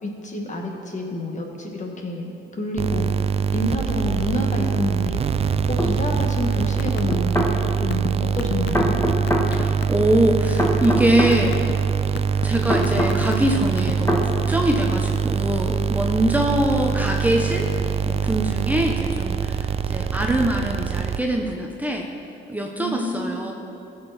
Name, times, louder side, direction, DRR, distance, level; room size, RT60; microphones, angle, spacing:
voice 1, 0.0-3.2 3.5-7.4 7.8-9.0 22.8-23.5, left 1 dB, 40° left, 1 dB, 1.7 m, -29 dB
sound 1, 2.8-21.5, right 7 dB, 30° right, 0.4 m, -24 dB
sound 2, 5.8-5.9 7.1-7.5 8.7-9.5 10.6-11.4 12.7-13.2 14.1-14.3, left 1 dB, 15° left, 1.6 m, -22 dB
sound 3, 6.7-7.2 7.4-10.0 10.5-11.0 11.3-11.7 12.2-12.5 12.8-14.1, left 10 dB, 65° left, 0.6 m, -30 dB
voice 2, 9.5-11.6 11.9-12.0 12.4-17.7 18.1-22.1 22.5-23.5, right 1 dB, 10° right, 1 dB, 0.9 m, -23 dB
15.0 x 6.9 x 4.2 m, 2.7 s
cardioid pair, 90°, 20 cm